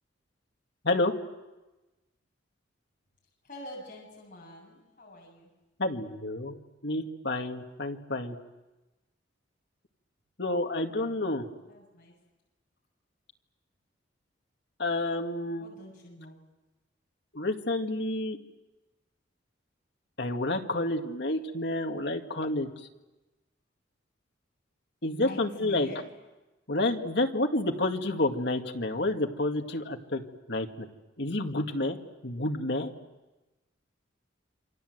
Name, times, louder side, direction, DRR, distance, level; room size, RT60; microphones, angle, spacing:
voice 1, 3.4-5.5 10.9-11.3 11.7-12.1 15.6-16.4 25.1-26.0, left 1 dB, 45° left, -3 dB, 7.8 m, -45 dB
voice 2, 5.8-6.5 6.8-8.4 10.4-11.4 14.8-15.7 17.3-18.4 20.2-22.7 25.0-25.9 26.7-30.2 30.5-30.9 31.2-32.0 32.2-32.9, left 2 dB, 60° left, 4 dB, 2.0 m, -29 dB
28.0 x 25.5 x 7.9 m, 1.1 s
head